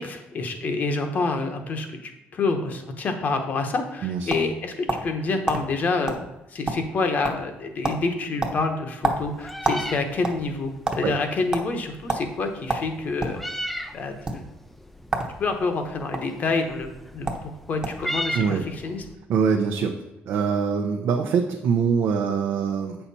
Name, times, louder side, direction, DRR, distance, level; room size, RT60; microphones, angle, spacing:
voice 1, 0.0-6.2 6.5-13.4 13.9-14.4 15.4-17.3 17.7-19.0, left 3 dB, 45° left, 6 dB, 1.0 m, -27 dB
sound 1, 3.7-5.2 5.5-5.6 6.1-6.2 6.5-7.0 7.2-7.5 7.8-8.0 8.4-9.9 10.2-11.0 11.5-11.7 12.1-12.2 12.7-13.4 14.1-14.3 15.1-15.3 15.6-16.2 16.9-17.0 17.3-17.5 17.8-18.1, right 2 dB, 20° right, 1.0 m, -27 dB
Meow, 9.0-19.1, equal, 5° left, 0.4 m, -37 dB
voice 2, 19.3-20.0 20.3-23.0, right 6 dB, 70° right, 2 dB, 0.7 m, -23 dB
8.1 x 5.7 x 4.2 m, 0.96 s
cardioid pair, 140°, 4 cm